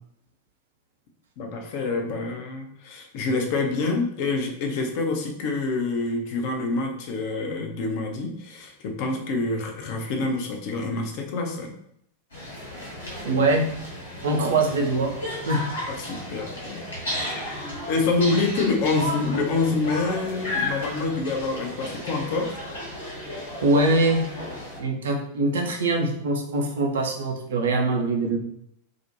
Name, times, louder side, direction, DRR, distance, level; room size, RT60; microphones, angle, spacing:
voice 1, 1.4-11.7 15.9-16.8 17.1-17.5 17.9-22.6, left 3 dB, 45° left, 3 dB, 0.5 m, -27 dB
sound 1, 12.3-24.8, left 1 dB, 75° left, 1.1 m, -34 dB
voice 2, 13.2-13.7 14.2-15.7 23.6-24.3 24.8-28.4, right 2 dB, 60° right, 2 dB, 0.5 m, -23 dB
2.4 x 2.1 x 2.8 m, 0.71 s
figure-of-eight pair, 90°, 0 cm